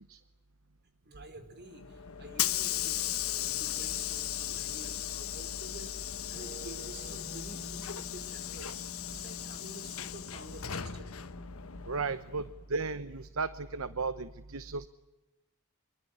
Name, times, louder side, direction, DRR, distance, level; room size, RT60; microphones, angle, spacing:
voice 1, 1.0-11.1, right 2 dB, 50° right, 8 dB, 4.9 m, -50 dB
Hiss / Sliding door, 1.7-12.5, left 11 dB, 70° left, 1.3 m, -36 dB
sound 1, 6.3-12.4, left 1 dB, 35° right, 3.3 m, -50 dB
voice 2, 11.9-14.9, right 4 dB, 65° right, 14 dB, 0.9 m, -35 dB
25.5 x 24.0 x 9.6 m, 1.0 s
head